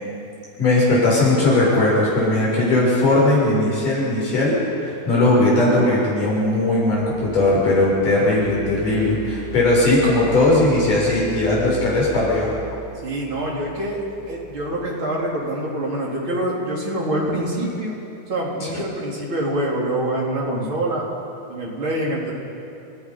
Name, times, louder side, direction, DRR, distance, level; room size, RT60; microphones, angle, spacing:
voice 1, 0.6-12.5, left 2 dB, 75° left, -5 dB, 8.4 m, -18 dB
sound 1, 6.8-15.3, right 2 dB, 65° right, 5.4 m, -39 dB
voice 2, 13.0-14.0 14.3-18.0 18.3-21.1 21.5-22.3, right 1 dB, 40° right, -3 dB, 4.3 m, -25 dB
30.0 x 17.0 x 5.6 m, 2.6 s
omnidirectional pair, 3.7 m